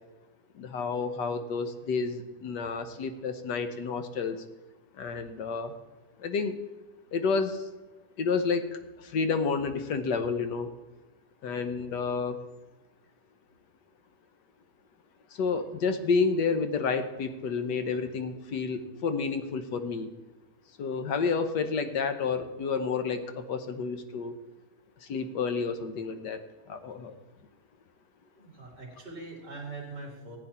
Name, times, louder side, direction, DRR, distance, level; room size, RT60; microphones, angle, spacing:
voice 1, 0.5-4.4 4.9-5.7 6.2-6.5 7.1-7.7 8.2-10.7 11.4-12.4 15.3-20.1 20.8-24.3 25.0-26.4 26.7-27.1, left 5 dB, 90° left, 8 dB, 1.6 m, -30 dB
voice 2, 28.3-30.4, right 3 dB, 30° right, -2 dB, 3.0 m, -42 dB
15.0 x 9.1 x 4.3 m, 1.2 s
omnidirectional pair, 1.8 m